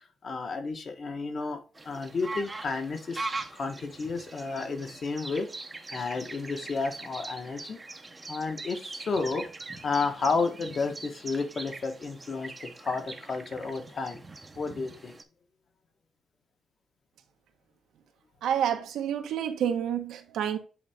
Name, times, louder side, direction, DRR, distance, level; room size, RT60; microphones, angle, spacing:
voice 1, 0.2-3.2 3.5-5.5 5.9-7.8 8.3-9.5 9.8-14.2 14.6-15.2, left 4 dB, 40° left, 1.3 m, -32 dB
sound 1, 1.7-15.2, right 3 dB, 15° right, 0.8 m, -42 dB
voice 2, 18.4-20.6, right 9 dB, 90° right, 1.2 m, -29 dB
8.5 x 4.0 x 3.5 m
cardioid pair, 155°, 0 cm